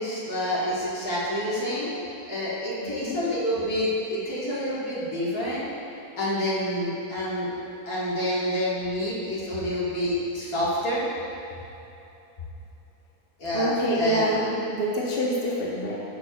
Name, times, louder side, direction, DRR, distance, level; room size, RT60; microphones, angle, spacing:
voice 1, 0.0-1.9 2.3-5.7 6.2-7.5 7.9-11.0 13.4-13.7 14.0-14.3, equal, 70° left, -9 dB, 2.1 m, -28 dB
voice 2, 2.8-3.2 13.5-15.9, equal, 40° left, -5 dB, 1.1 m, -26 dB
10.5 x 6.3 x 2.3 m, 2.9 s
omnidirectional pair, 1.6 m